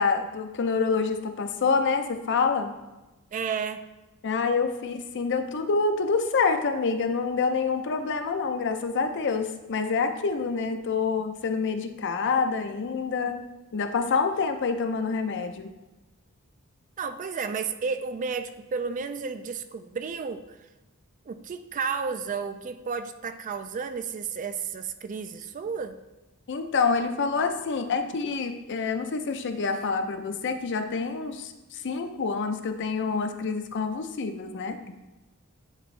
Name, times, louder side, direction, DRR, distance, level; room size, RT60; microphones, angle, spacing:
voice 1, 0.0-2.7 4.2-13.4 13.7-15.7 26.5-35.0, left 4 dB, 55° left, 7 dB, 0.5 m, -27 dB
voice 2, 3.3-3.8 17.0-20.6 21.3-26.0, right 5 dB, 35° right, 10 dB, 0.3 m, -32 dB
9.7 x 3.4 x 3.2 m, 1.1 s
head